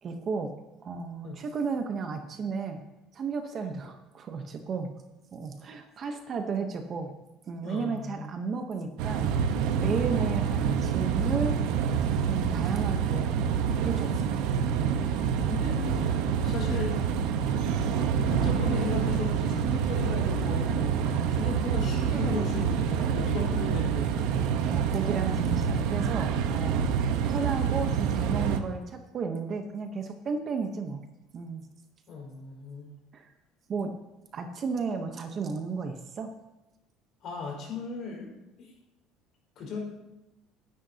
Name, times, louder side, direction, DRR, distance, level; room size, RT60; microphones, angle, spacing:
voice 1, 0.0-0.5 0.8-2.8 3.1-4.9 5.3-7.1 7.5-11.6 12.2-13.4 13.8-14.2 14.7-15.0 24.7-26.9 27.2-31.1 31.3-31.6 33.1-33.3 33.7-33.9 34.3-36.3, right 5 dB, 30° right, 5 dB, 0.9 m, -33 dB
voice 2, 7.6-8.3 14.9-15.2 15.5-16.1 16.4-17.5 18.3-21.0 21.3-24.3 32.1-32.9 37.2-38.3 38.6-38.7 39.5-39.8, left 4 dB, 45° left, -2 dB, 4.8 m, -36 dB
sound 1, 9.0-28.6, right 7 dB, 70° right, 1.0 m, -27 dB
19.5 x 10.0 x 2.8 m, 0.98 s
cardioid pair, 160°, 0 cm